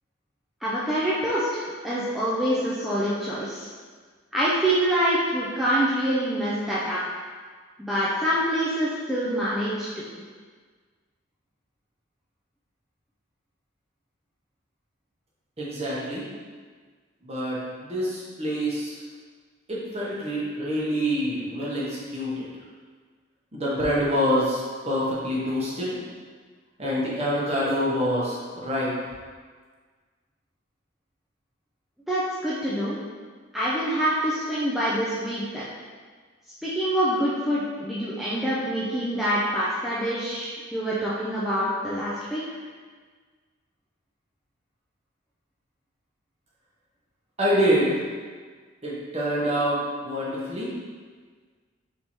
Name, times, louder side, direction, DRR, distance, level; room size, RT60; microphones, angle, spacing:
voice 1, 0.6-3.7 4.3-7.0 7.8-10.0 32.1-33.0 33.5-35.6 36.6-42.4, equal, ahead, -9 dB, 0.4 m, -26 dB
voice 2, 15.6-16.2 17.2-19.0 19.7-22.5 23.5-24.6 24.9-26.0 26.8-28.9 47.4-48.0 48.8-50.7, equal, 30° right, -6 dB, 0.9 m, -26 dB
4.2 x 3.5 x 3.0 m, 1.5 s
head